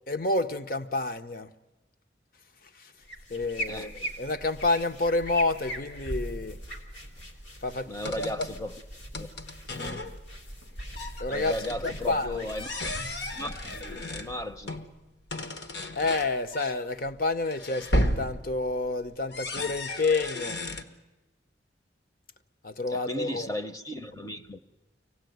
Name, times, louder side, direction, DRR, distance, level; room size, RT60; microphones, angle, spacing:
voice 1, 0.1-1.5 2.7-2.9 3.3-6.6 7.6-8.3 11.2-12.5 15.9-20.6 22.6-23.5, left 3 dB, 50° left, 0.8 m, -29 dB
sound 1, 3.0-15.0, equal, 85° left, 3.0 m, -40 dB
voice 2, 7.9-8.8 9.1-9.3 11.3-12.8 13.3-14.8 22.9-24.6, left 1 dB, 20° left, 0.7 m, -35 dB
sound 2, 8.0-8.6 9.1-10.2 10.5-10.7 10.9-12.0 12.5-14.9 15.3-20.8, left 1 dB, 65° left, 1.3 m, -34 dB
25.0 x 17.5 x 9.3 m
head